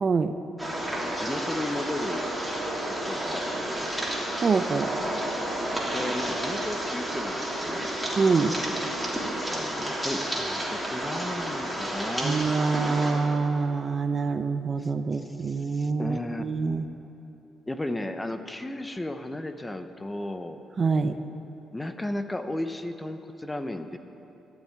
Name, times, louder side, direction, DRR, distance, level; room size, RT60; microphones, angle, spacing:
voice 1, 0.0-0.3 4.4-4.9 8.2-8.5 12.2-16.9 20.8-21.2, right 4 dB, 40° right, 9 dB, 0.6 m, -25 dB
sound 1, 0.6-13.1, right 1 dB, 5° right, 3.2 m, -31 dB
voice 2, 0.9-2.4 2.9-3.9 5.9-7.9 9.5-12.4 14.8-16.4 17.7-20.6 21.7-24.0, left 1 dB, 15° left, 8 dB, 0.8 m, -35 dB
14.0 x 7.1 x 9.3 m, 2.9 s
cardioid pair, 90°, 0 cm